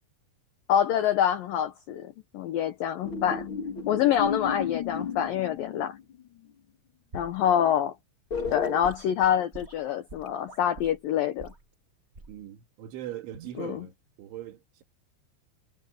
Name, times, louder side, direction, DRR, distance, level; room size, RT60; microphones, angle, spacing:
voice 1, 0.7-3.5 3.9-6.0 7.1-7.9 8.5-11.5 13.6-13.8, left 10 dB, 80° left, 2.0 m, -26 dB
sound 1, 3.0-6.2 8.3-8.8, left 6 dB, 40° left, 1.8 m, -33 dB
Gurgling / Sink (filling or washing) / Liquid, 7.1-7.4 8.3-11.0 11.4-11.6 12.1-12.4 13.3-13.6, right 2 dB, 30° right, 1.1 m, -45 dB
voice 2, 12.3-14.8, right 12 dB, 75° right, 4.4 m, -41 dB
omnidirectional pair, 5.5 m